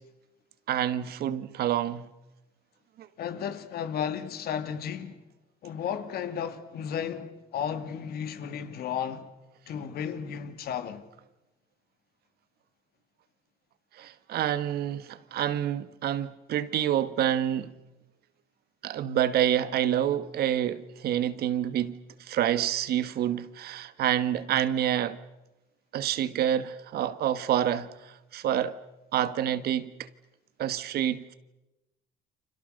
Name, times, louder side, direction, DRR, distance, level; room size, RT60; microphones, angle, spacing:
voice 1, 0.7-2.1 3.0-3.1 13.9-17.7 18.8-25.2 25.9-28.7 29.1-30.1 30.6-31.3, right 10 dB, 65° right, 1.5 m, -28 dB
voice 2, 3.2-5.2 5.6-9.3 9.7-11.1, left 8 dB, 65° left, 2.6 m, -34 dB
30.0 x 26.0 x 6.6 m
cardioid pair, 110°, 17 cm